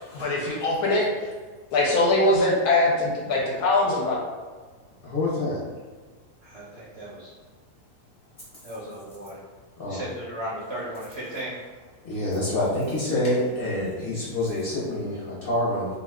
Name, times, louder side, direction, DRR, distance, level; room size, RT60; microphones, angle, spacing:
voice 1, 0.1-1.3 1.7-4.2, left 2 dB, 70° left, -2 dB, 1.0 m, -22 dB
voice 2, 5.0-5.6 9.8-10.0 12.0-15.8, left 1 dB, 45° left, -8 dB, 0.8 m, -27 dB
voice 3, 6.4-7.3 8.6-9.4 9.9-11.6, right 1 dB, 55° right, -8 dB, 0.7 m, -36 dB
2.6 x 2.3 x 3.4 m, 1.4 s
omnidirectional pair, 1.8 m